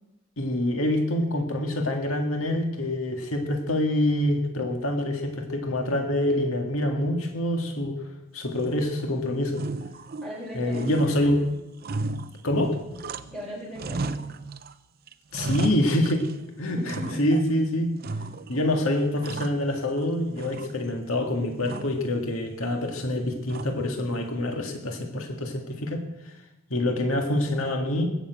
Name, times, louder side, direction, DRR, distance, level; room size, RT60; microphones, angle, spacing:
voice 1, 0.4-8.0 8.3-9.6 10.6-11.4 12.4-12.8 15.3-16.3 16.6-18.0 18.5-26.0 26.7-28.1, left 1 dB, 80° left, 3 dB, 1.9 m, -26 dB
sound 1, 8.6-9.1 9.5-10.4 10.7-13.5 13.7-14.7 15.1-16.4 16.9-17.5 18.0-18.7 19.0-20.1 20.4-21.1 21.6-22.1 23.5-24.0, right 3 dB, 45° right, 0.6 m, -35 dB
voice 2, 10.2-11.1 13.2-14.1 16.7-17.2, equal, ahead, -6 dB, 6.8 m, -38 dB
20.5 x 7.1 x 8.2 m, 0.93 s
head